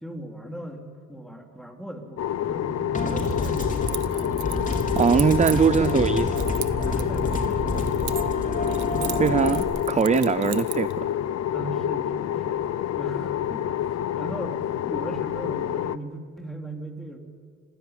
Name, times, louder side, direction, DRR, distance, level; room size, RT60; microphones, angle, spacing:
voice 1, 0.0-5.3 6.8-9.4 11.5-14.6 14.9-17.2, right 1 dB, ahead, 3 dB, 3.5 m, -38 dB
sound 1, 2.2-16.0, left 11 dB, 60° left, 0.7 m, -28 dB
sound 2, 2.9-9.6, left 1 dB, 25° left, 3.8 m, -28 dB
Keys jangling, 3.2-6.0 6.4-8.4 8.7-10.9, right 13 dB, 75° right, 1.3 m, -37 dB
voice 2, 5.0-6.3 9.2-11.1, right 6 dB, 25° right, 17 dB, 0.5 m, -21 dB
26.5 x 16.0 x 9.7 m, 2.2 s
cardioid pair, 90°, 30 cm